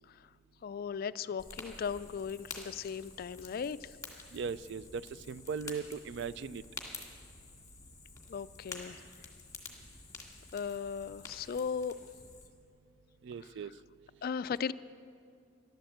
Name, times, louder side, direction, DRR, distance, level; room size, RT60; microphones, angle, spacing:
voice 1, 0.6-4.0 8.3-9.0 10.5-11.9 14.2-14.7, left 6 dB, 45° left, 16 dB, 0.3 m, -37 dB
Fire, 1.4-12.5, left 3 dB, 15° left, 1.9 m, -49 dB
voice 2, 4.3-6.6 13.2-13.7, right 5 dB, 60° right, 17 dB, 0.3 m, -38 dB
14.5 x 12.0 x 7.8 m, 2.4 s
head